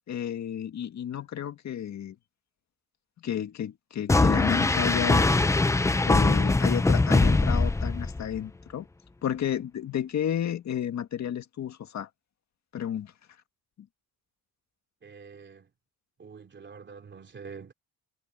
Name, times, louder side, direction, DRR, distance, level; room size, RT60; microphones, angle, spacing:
voice 1, 0.1-2.2 3.2-5.3 6.0-8.9 9.2-12.1 12.7-13.1 13.8-13.9, left 9 dB, 50° left, 2.0 m, -32 dB
sound 1, 4.1-8.4, left 3 dB, 10° left, 0.5 m, -22 dB
voice 2, 15.0-15.7 16.2-17.7, right 5 dB, 30° right, 3.1 m, -46 dB
cardioid pair, 160°, 35 cm